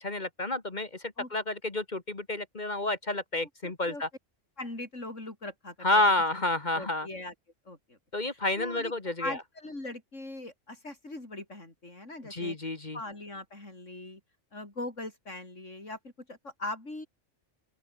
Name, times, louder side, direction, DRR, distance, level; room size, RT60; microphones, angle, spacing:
voice 1, 0.0-4.1 5.8-7.1 8.1-9.4 12.3-13.0, left 2 dB, 40° left, 1.9 m, -30 dB
voice 2, 3.6-4.0 4.6-5.9 6.7-7.3 7.7-8.0 8.6-8.9 9.2-12.6 12.9-14.2 14.5-17.1, left 2 dB, 90° left, 6.2 m, -40 dB
open air
omnidirectional pair, 1.2 m